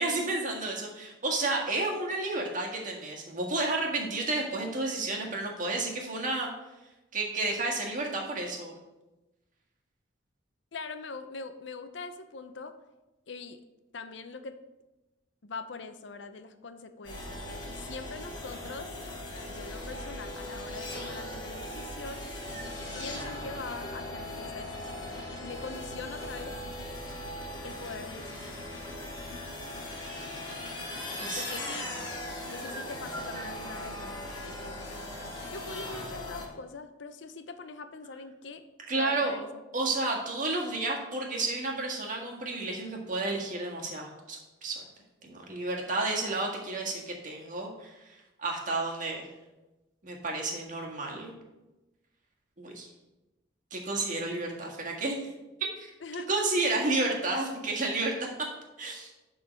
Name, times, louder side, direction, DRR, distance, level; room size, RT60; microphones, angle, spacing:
voice 1, 0.0-6.5 7.1-8.7 31.2-31.4 38.9-39.4 39.7-44.8 45.2-49.3 50.0-51.4 52.6-52.9 53.7-55.2 55.8-55.9 56.3-58.1 58.8-59.1, right 2 dB, 40° right, 0 dB, 1.6 m, -31 dB
voice 2, 10.7-12.8 13.3-13.6 13.9-14.6 15.4-18.9 19.3-22.2 23.0-26.6 27.6-28.6 31.3-31.9 32.5-35.0 35.4-38.6 38.9-39.6 56.0-56.4, left 4 dB, 70° left, 10 dB, 0.6 m, -43 dB
sound 1, 17.0-36.5, left 1 dB, 25° left, 2.9 m, -39 dB
11.5 x 3.9 x 5.1 m, 1.0 s
head